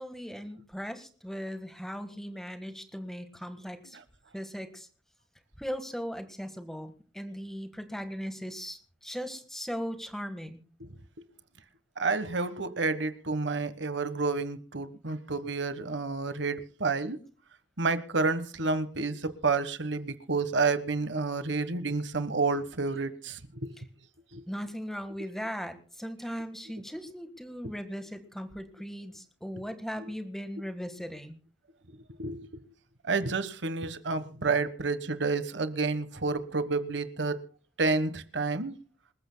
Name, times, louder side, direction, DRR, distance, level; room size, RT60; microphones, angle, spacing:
voice 1, 0.0-4.0 4.3-4.9 5.6-10.6 23.8-23.9 24.5-31.4, equal, ahead, 1.5 m, -38 dB
voice 2, 12.0-17.2 17.8-23.7 24.3-24.4 30.0-30.1 32.2-32.5 33.0-37.4 37.8-38.8, right 3 dB, 70° right, 1.3 m, -30 dB
27.0 x 14.0 x 2.2 m
head